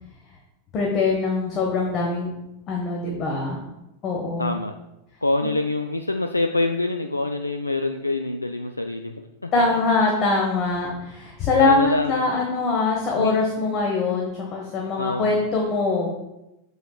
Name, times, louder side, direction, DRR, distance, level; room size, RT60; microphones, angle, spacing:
voice 1, 0.7-2.4 2.7-3.6 4.0-4.5 9.5-16.1, left 3 dB, 35° left, -1 dB, 1.3 m, -23 dB
voice 2, 4.4-4.7 5.2-9.1 9.4-9.5 11.6-12.2 13.2-13.4 15.0-15.4, left 2 dB, 85° left, 5 dB, 0.3 m, -25 dB
7.8 x 7.8 x 2.4 m, 0.93 s
figure-of-eight pair, 90°, 0 cm